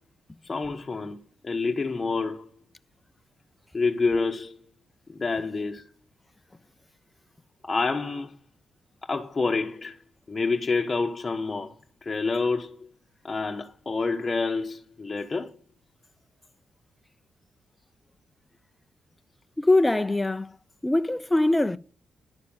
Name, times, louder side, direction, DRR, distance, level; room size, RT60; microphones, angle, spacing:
voice 1, 0.4-2.5 3.7-4.6 5.1-5.8 7.6-8.4 9.0-10.0 10.3-11.8 12.0-12.9 13.2-15.5, left 4 dB, 30° left, 1.2 m, -28 dB
voice 2, 19.6-20.6 20.8-21.8, left 2 dB, 10° left, 0.5 m, -22 dB
10.5 x 6.7 x 9.0 m
cardioid pair, 75°, 0 cm